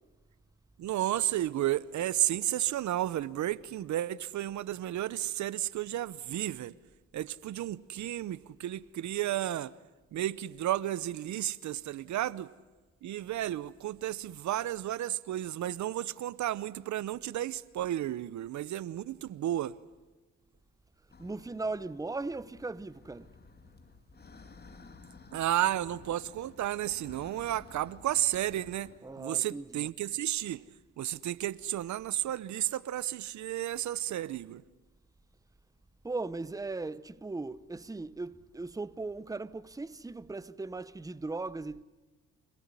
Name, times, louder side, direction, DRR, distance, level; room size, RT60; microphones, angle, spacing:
voice 1, 0.8-6.7 7.1-9.7 10.1-12.5 13.0-19.7 25.3-30.7 31.0-34.6, right 13 dB, 70° right, 0.9 m, -32 dB
sound 1, 21.1-29.0, left 4 dB, 35° left, 3.3 m, -54 dB
voice 2, 21.2-23.3 29.0-29.6 36.0-41.8, right 3 dB, 10° right, 0.9 m, -38 dB
29.0 x 18.5 x 9.8 m
cardioid pair, 90°, 30 cm